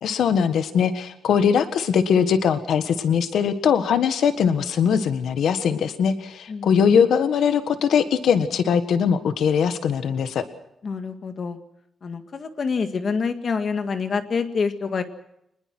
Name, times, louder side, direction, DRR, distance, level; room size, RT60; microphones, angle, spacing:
voice 1, 0.0-10.4, left 7 dB, 80° left, 10 dB, 1.5 m, -21 dB
voice 2, 10.8-11.6 12.0-15.0, left 5 dB, 40° left, 8 dB, 1.8 m, -26 dB
25.0 x 20.5 x 6.1 m, 0.80 s
wide cardioid pair, 175°, 0 cm